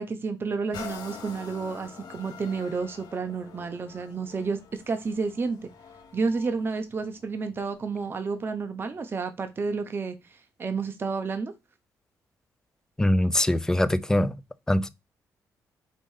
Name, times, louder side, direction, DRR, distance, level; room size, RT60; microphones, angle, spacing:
voice 1, 0.0-5.7 6.1-11.5, right 4 dB, 35° right, 0.6 m, -31 dB
sound 1, 0.7-8.3 8.9-9.0, left 6 dB, 90° left, 1.2 m, -46 dB
voice 2, 13.0-14.3 14.7-14.9, left 1 dB, 10° left, 0.4 m, -22 dB
5.1 x 2.6 x 3.6 m
cardioid pair, 110°, 7 cm